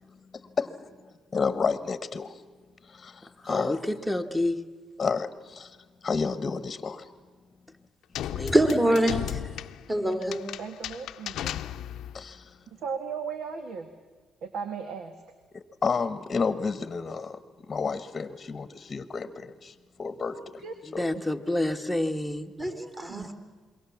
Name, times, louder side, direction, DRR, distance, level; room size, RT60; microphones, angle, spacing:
voice 1, 1.3-2.4 2.9-3.8 5.0-5.8 6.0-7.1 12.1-12.5 15.5-20.6 20.9-21.1, left 5 dB, 35° left, 13 dB, 1.1 m, -31 dB
voice 2, 3.4-4.6 8.4-8.5 21.0-22.5, left 1 dB, ahead, 7 dB, 1.5 m, -28 dB
sound 1, 8.1-12.2, left 11 dB, 80° left, 0.6 m, -35 dB
voice 3, 8.4-9.2 9.9-10.4 22.6-23.3, right 1 dB, 15° right, 6 dB, 3.2 m, -24 dB
voice 4, 10.6-11.5 12.8-13.9 14.4-15.1 20.2-20.7 22.7-23.3, right 6 dB, 70° right, 8 dB, 1.7 m, -37 dB
27.5 x 22.5 x 7.2 m, 1.5 s
cardioid pair, 90°, 0 cm